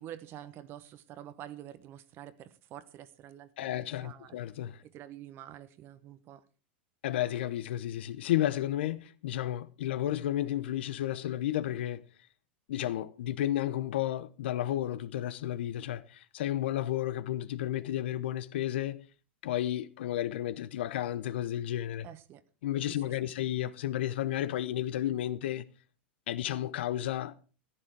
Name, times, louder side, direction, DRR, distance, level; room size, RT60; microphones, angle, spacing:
voice 1, 0.0-4.4 4.8-6.4 22.0-22.4 22.8-23.3, right 11 dB, 40° right, 1.1 m, -48 dB
voice 2, 3.6-4.8 7.0-12.0 12.7-19.0 19.4-22.1 22.6-25.6 26.3-27.3, left 12 dB, 70° left, 0.9 m, -32 dB
14.5 x 10.0 x 4.7 m
hypercardioid pair, 110°, 6 cm